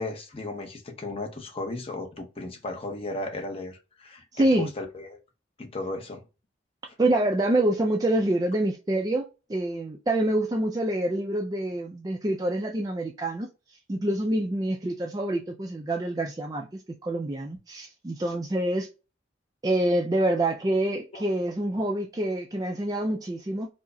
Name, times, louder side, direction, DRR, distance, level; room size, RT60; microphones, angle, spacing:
voice 1, 0.0-5.2 5.6-6.2 21.1-21.2, left 2 dB, 30° left, 0.7 m, -35 dB
voice 2, 4.3-4.7 7.0-13.5 13.9-18.9 19.6-23.7, right 1 dB, 20° right, 0.4 m, -26 dB
4.6 x 2.1 x 2.6 m
head